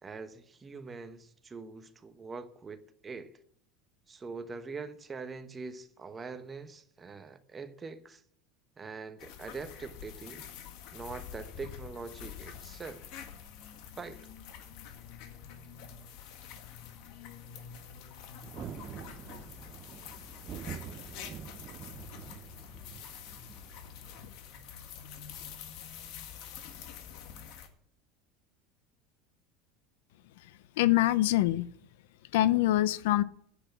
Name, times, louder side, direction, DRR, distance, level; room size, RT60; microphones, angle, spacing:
voice 1, 0.0-3.4 4.1-8.2 8.8-10.5 10.9-13.0 14.0-14.2, right 4 dB, 20° right, 1.0 m, -43 dB
sound 1, 9.2-27.7, left 8 dB, 60° left, 1.8 m, -47 dB
Thunder, 18.4-24.2, right 9 dB, 35° right, 0.6 m, -46 dB
voice 2, 30.8-31.7 32.3-33.2, left 15 dB, 80° left, 0.6 m, -24 dB
10.0 x 8.1 x 8.3 m
supercardioid pair, 140°, 0 cm